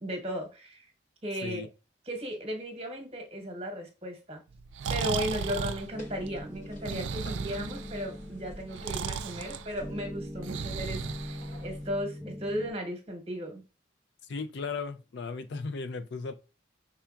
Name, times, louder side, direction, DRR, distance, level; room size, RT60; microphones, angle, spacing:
voice 1, 0.0-0.9 1.2-1.6 2.1-4.4 4.9-13.6, equal, 30° right, 1.0 m, -36 dB
Breathing, 4.5-12.0, right 6 dB, 75° right, 0.4 m, -36 dB
sound 1, 5.0-11.8, equal, 40° left, 0.9 m, -50 dB
sound 2, 5.9-12.7, left 1 dB, ahead, 0.4 m, -43 dB
voice 2, 14.3-16.4, left 4 dB, 60° left, 0.4 m, -36 dB
5.6 x 3.5 x 2.4 m
head